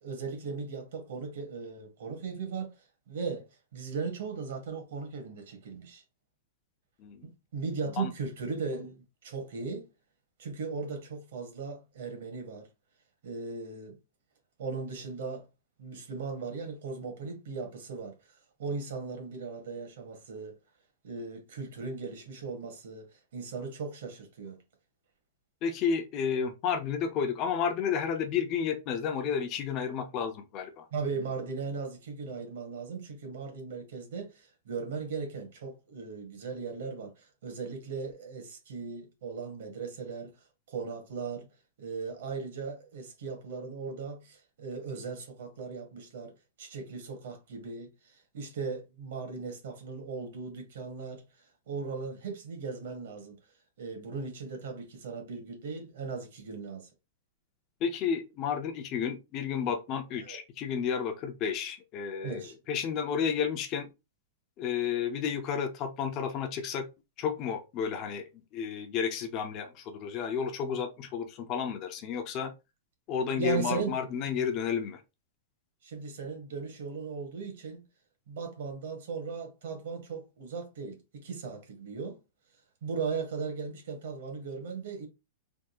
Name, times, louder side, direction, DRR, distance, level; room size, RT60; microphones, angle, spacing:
voice 1, 0.0-2.7 3.1-3.4 3.7-6.0 7.2-9.9 10.4-12.7 13.2-13.9 14.6-15.5 15.8-18.1 18.6-20.5 21.0-24.6 30.9-40.3 40.7-41.5 41.8-46.3 46.6-47.9 48.3-51.2 51.7-53.4 53.8-56.9 60.2-60.4 62.2-62.5 73.3-73.9 75.8-77.8 78.3-82.2 82.8-85.1, right 4 dB, 65° right, 1.2 m, -37 dB
voice 2, 25.6-30.8 57.8-62.4 62.7-63.9 64.6-66.8 67.2-68.2 68.5-72.5 73.1-75.0, left 7 dB, 30° left, 0.5 m, -31 dB
3.5 x 2.7 x 2.3 m
supercardioid pair, 165°, 0 cm